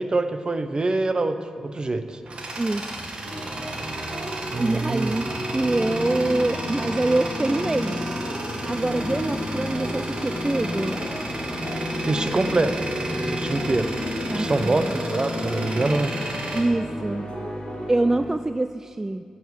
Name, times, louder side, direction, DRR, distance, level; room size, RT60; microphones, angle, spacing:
voice 1, 0.0-2.2 4.5-5.1 12.0-12.7 13.3-13.9 14.3-16.1, right 2 dB, 40° right, 10 dB, 0.8 m, -25 dB
Tools, 1.8-17.6, right 2 dB, 60° right, 1.6 m, -34 dB
voice 2, 2.6-2.9 4.6-8.0 8.6-11.0 14.3-15.0 16.5-17.3 17.9-19.2, right 2 dB, 20° right, 10 dB, 0.3 m, -25 dB
sound 1, 3.2-18.2, right 1 dB, 90° right, 2.5 m, -35 dB
sound 2, 5.3-17.9, left 2 dB, 50° left, 1.0 m, -33 dB
9.1 x 8.1 x 7.3 m, 2.1 s
cardioid pair, 60°, 2 cm